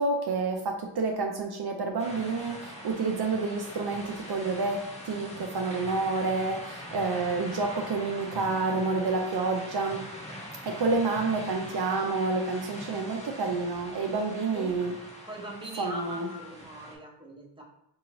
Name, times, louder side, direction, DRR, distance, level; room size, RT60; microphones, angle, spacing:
voice 1, 0.0-10.0 10.7-14.9 15.8-16.3, right 3 dB, 65° right, 2 dB, 0.5 m, -29 dB
sound 1, 2.0-17.0, equal, 15° left, 1.0 m, -43 dB
voice 2, 15.3-17.6, right 1 dB, 10° right, -2 dB, 0.9 m, -41 dB
4.6 x 2.6 x 3.0 m, 0.80 s
wide cardioid pair, 70°, 42 cm